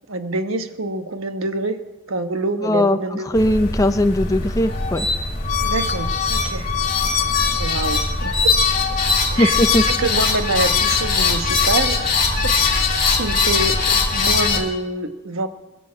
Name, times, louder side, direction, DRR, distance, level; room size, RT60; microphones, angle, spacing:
voice 1, 0.1-1.8 2.1-3.4 5.6-6.7 7.6-8.5 9.3-12.0 12.4-12.5 13.1-15.5, right 2 dB, 90° right, 7 dB, 1.3 m, -26 dB
voice 2, 2.6-3.0 3.3-5.1 9.4-9.8, left 1 dB, 15° left, 8 dB, 0.5 m, -18 dB
sound 1, 3.3-14.6, left 4 dB, 40° left, 2.8 m, -20 dB
21.0 x 8.3 x 7.6 m, 1.1 s
head